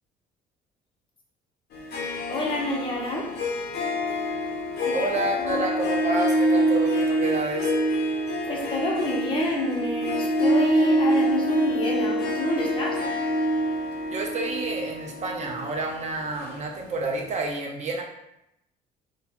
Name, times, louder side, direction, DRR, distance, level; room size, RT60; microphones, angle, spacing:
Harp, 1.7-17.1, equal, 70° left, 0.6 m, -26 dB
voice 1, 2.3-3.3 4.8-5.1 5.4-5.7 8.4-13.0, left 1 dB, 30° left, -2 dB, 0.6 m, -28 dB
voice 2, 4.9-7.7 14.1-18.0, right 2 dB, 45° right, 1 dB, 0.4 m, -29 dB
2.3 x 2.2 x 2.8 m, 0.84 s
cardioid pair, 110°, 17 cm